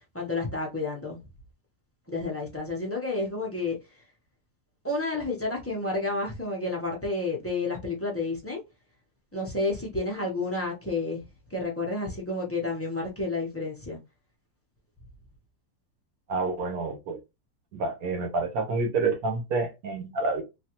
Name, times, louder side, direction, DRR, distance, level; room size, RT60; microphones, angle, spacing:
voice 1, 0.1-1.2 2.1-3.8 4.8-8.6 9.3-11.2 11.5-14.0, left 2 dB, 15° left, 0.4 m, -30 dB
voice 2, 16.3-17.2 17.7-20.4, right 3 dB, 70° right, 1.3 m, -28 dB
3.3 x 2.2 x 2.8 m
omnidirectional pair, 1.6 m